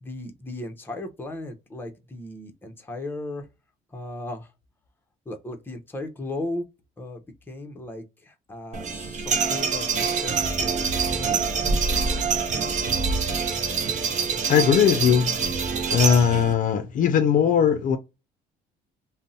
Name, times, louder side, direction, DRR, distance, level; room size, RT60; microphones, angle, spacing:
voice 1, 0.0-3.4 3.9-4.5 5.3-6.7 7.0-9.9 10.1-11.4, left 2 dB, 10° left, 0.6 m, -36 dB
sound 1, 8.7-16.5, right 5 dB, 45° right, 0.6 m, -25 dB
voice 2, 14.5-15.3 15.9-18.0, left 8 dB, 50° left, 0.4 m, -19 dB
2.6 x 2.0 x 3.7 m
cardioid pair, 110°, 17 cm